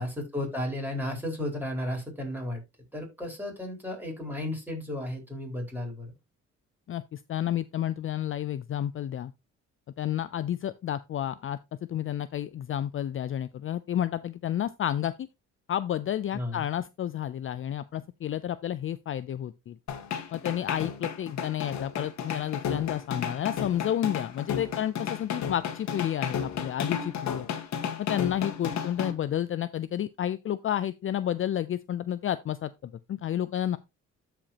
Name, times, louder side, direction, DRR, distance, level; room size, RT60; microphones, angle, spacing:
voice 1, 0.0-2.6 2.9-6.1 16.3-16.6, left 1 dB, 5° right, 4.7 m, -34 dB
voice 2, 6.9-9.3 10.0-11.6 11.9-15.1 15.7-19.8 20.3-27.5 28.0-33.8, left 11 dB, 45° left, 0.5 m, -31 dB
sound 1, 19.9-29.1, left 7 dB, 65° left, 1.6 m, -33 dB
13.0 x 5.1 x 2.9 m
cardioid pair, 90°, 30 cm